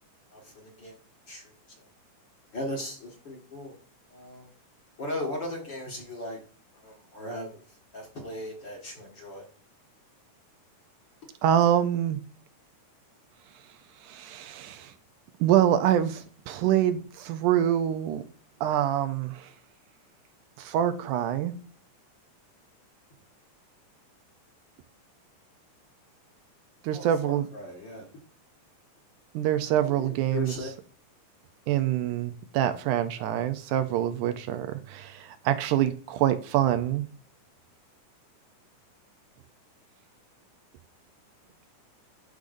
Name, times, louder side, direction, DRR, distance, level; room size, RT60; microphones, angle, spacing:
voice 1, 0.3-1.0 1.3-1.9 2.5-3.8 4.1-4.5 5.0-6.4 6.7-9.5 26.9-28.1 29.8-30.8, left 1 dB, 40° left, 0 dB, 2.0 m, -38 dB
voice 2, 11.4-12.2 14.0-14.9 15.4-18.2 18.6-19.5 20.6-21.6 26.8-27.5 29.3-30.5 31.7-37.1, right 11 dB, 80° right, 10 dB, 2.0 m, -25 dB
11.5 x 5.1 x 2.6 m, 0.41 s
omnidirectional pair, 3.7 m